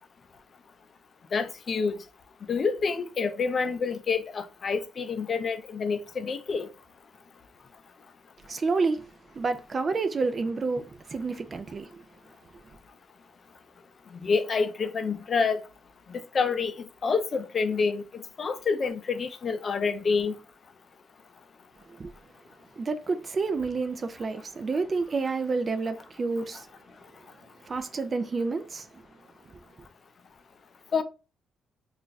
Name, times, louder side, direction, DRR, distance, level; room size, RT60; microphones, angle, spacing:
voice 1, 1.3-2.0 2.5-6.7 14.2-15.6 16.1-16.7 17.0-20.3 30.9-31.0, left 5 dB, 45° left, 0.5 m, -27 dB
voice 2, 8.5-12.0 21.9-22.1 22.8-26.7 27.6-29.0 29.5-29.6, right 4 dB, 40° right, 0.4 m, -29 dB
2.4 x 2.1 x 3.9 m
cardioid pair, 90°, 0 cm